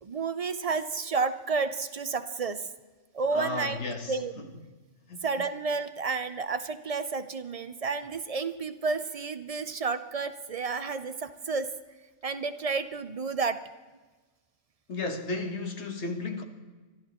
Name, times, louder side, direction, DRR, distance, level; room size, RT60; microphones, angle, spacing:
voice 1, 0.0-2.7 3.1-3.8 4.1-4.5 5.2-11.7 12.2-13.6, right 4 dB, 45° right, 0.5 m, -31 dB
voice 2, 3.3-4.6 5.1-5.5 14.9-16.4, left 3 dB, 65° left, 1.6 m, -34 dB
26.0 x 12.5 x 3.0 m
omnidirectional pair, 1.3 m